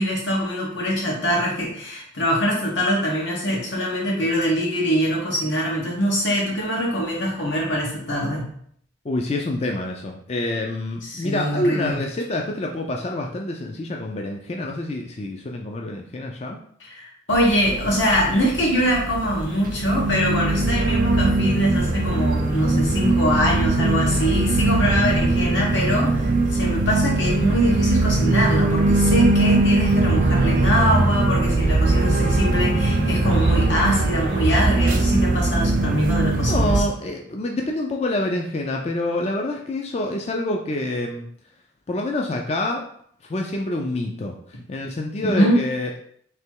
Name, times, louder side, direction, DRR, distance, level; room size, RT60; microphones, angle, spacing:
voice 1, 0.0-8.4 11.0-12.0 16.8-36.8 45.3-45.6, equal, 90° left, -3 dB, 1.6 m, -23 dB
voice 2, 9.0-16.6 36.5-41.2 41.9-42.8 43.2-46.0, left 1 dB, 35° left, 1 dB, 0.4 m, -27 dB
sound 1, 17.3-36.8, right 2 dB, 45° right, 0.5 m, -21 dB
3.3 x 2.9 x 4.5 m, 0.64 s
head